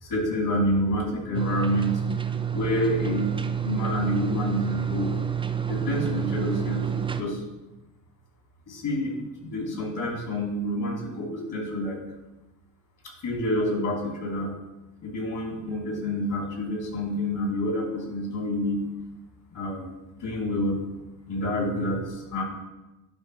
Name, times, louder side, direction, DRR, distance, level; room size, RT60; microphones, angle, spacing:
voice 1, 0.0-2.0 2.5-3.3 3.6-5.1 5.7-7.4 8.7-9.2 9.4-12.0 13.0-14.5 15.0-18.8 19.5-19.9 20.2-20.8 21.3-22.4, equal, 55° left, 0 dB, 2.9 m, -28 dB
sound 1, 1.3-7.2, right 8 dB, 15° right, 0.6 m, -29 dB
10.5 x 3.6 x 5.0 m, 1.0 s
supercardioid pair, 80°, 38 cm